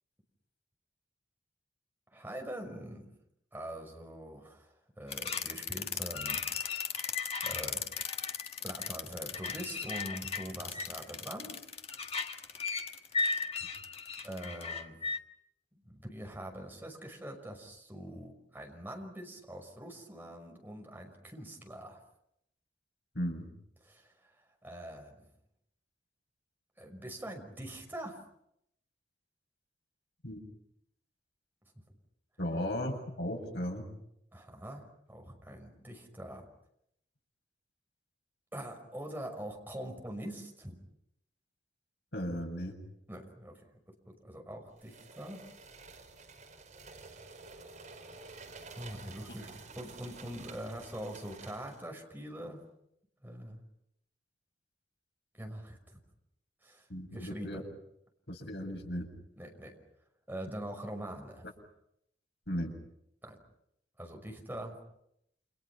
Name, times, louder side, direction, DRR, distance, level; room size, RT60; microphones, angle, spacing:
voice 1, 2.1-3.2 3.5-7.1 7.4-7.9 8.6-11.6 14.2-15.0 15.7-22.0 23.8-24.3 24.6-25.3 26.8-28.2 34.3-36.5 38.5-40.8 43.1-43.6 44.1-45.4 48.7-52.6 53.2-53.6 55.4-56.0 56.6-56.9 57.1-57.7 59.4-59.8 60.3-61.5 63.2-63.4 64.0-64.8, right 1 dB, 10° right, 2 dB, 5.8 m, -44 dB
sound 1, 5.1-15.2, left 5 dB, 35° left, 1.4 m, -36 dB
voice 2, 23.1-23.5 30.2-30.4 32.4-33.9 42.1-42.8 49.3-49.4 56.9-57.6 58.3-59.1 62.5-62.7, equal, 75° left, 2 dB, 7.4 m, -36 dB
sound 2, 44.8-51.9, right 3 dB, 45° right, 5.4 m, -50 dB
30.0 x 28.5 x 6.0 m, 0.76 s
head